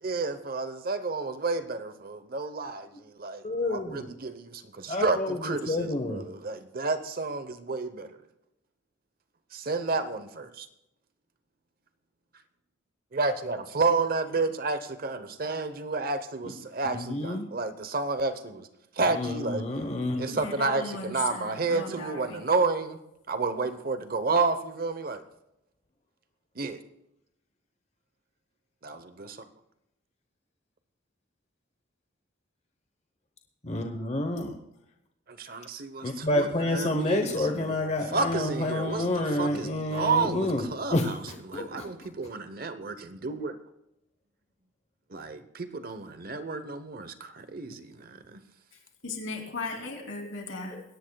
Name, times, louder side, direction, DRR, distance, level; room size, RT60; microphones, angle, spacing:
voice 1, 0.0-8.3 9.5-10.7 12.3-12.4 13.1-19.7 20.2-23.0 23.3-25.2 26.5-26.8 28.8-29.5 35.3-43.6 45.1-48.4, right 3 dB, 45° right, 0.9 m, -31 dB
voice 2, 3.4-4.1 4.9-6.2 16.9-17.5 19.1-20.4 33.6-34.6 36.0-40.6 40.9-41.1 41.5-41.9 50.7-50.8, left 1 dB, 35° left, 1.0 m, -29 dB
voice 3, 20.3-22.4 49.0-50.8, left 3 dB, 75° left, 3.1 m, -37 dB
21.0 x 17.0 x 2.3 m
head